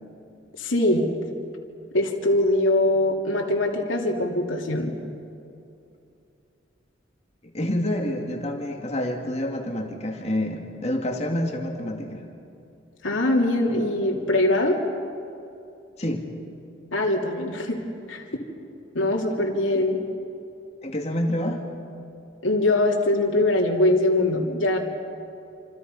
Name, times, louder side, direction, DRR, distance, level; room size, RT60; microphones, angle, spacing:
voice 1, 0.6-1.1 1.9-4.9 13.0-14.8 16.9-17.8 18.1-18.2 18.9-20.0 22.4-24.8, left 1 dB, 85° left, -1 dB, 3.0 m, -22 dB
voice 2, 7.4-12.2 16.0-16.3 19.7-19.8 20.8-21.6, left 1 dB, 35° left, 2 dB, 2.4 m, -28 dB
28.0 x 27.0 x 5.5 m, 2.6 s
head